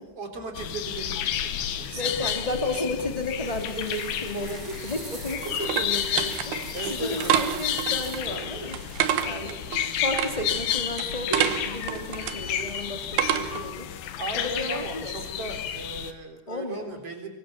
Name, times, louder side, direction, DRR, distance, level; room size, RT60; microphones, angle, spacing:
voice 1, 0.1-3.1 6.7-7.7 14.2-17.3, right 3 dB, 35° right, 4 dB, 4.0 m, -37 dB
sound 1, 0.5-16.1, left 10 dB, 65° left, 2.8 m, -31 dB
voice 2, 2.0-6.5 6.8-9.0 9.2-9.5 9.8-13.9 14.3-15.4 16.5-17.0, left 2 dB, 20° left, 4 dB, 0.9 m, -33 dB
sound 2, 3.3-9.4, right 4 dB, 55° right, 0.9 m, -45 dB
sound 3, 4.8-13.8, right 10 dB, 70° right, 3.0 m, -30 dB
25.0 x 23.5 x 7.1 m, 0.90 s
omnidirectional pair, 5.2 m